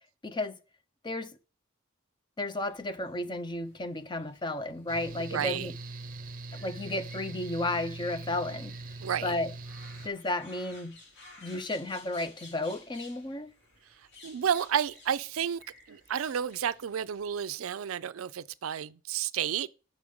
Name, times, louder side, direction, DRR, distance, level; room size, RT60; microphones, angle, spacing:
voice 1, 0.2-0.6 1.0-1.3 2.4-5.7 6.5-8.7 9.2-9.5 10.0-11.0 11.4-13.5, left 2 dB, 20° left, 0.6 m, -33 dB
sound 1, 2.6-17.4, left 2 dB, 60° left, 2.8 m, -56 dB
Mechanical fan, 4.9-10.1, right 2 dB, 40° right, 0.6 m, -42 dB
voice 2, 5.3-5.7 9.0-9.3 14.2-15.6 15.9-19.7, right 9 dB, 85° right, 0.4 m, -31 dB
6.5 x 4.9 x 5.3 m
head